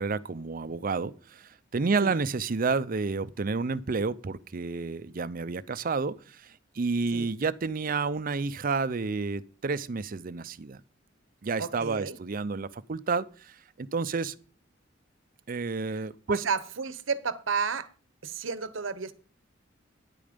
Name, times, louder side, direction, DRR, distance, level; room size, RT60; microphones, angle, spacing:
voice 1, 0.0-10.8 11.4-14.3 15.5-16.4, right 4 dB, 45° right, 0.5 m, -30 dB
voice 2, 11.6-12.2 16.3-17.9 18.2-19.1, right 5 dB, 90° right, 0.9 m, -31 dB
10.5 x 8.8 x 5.1 m
head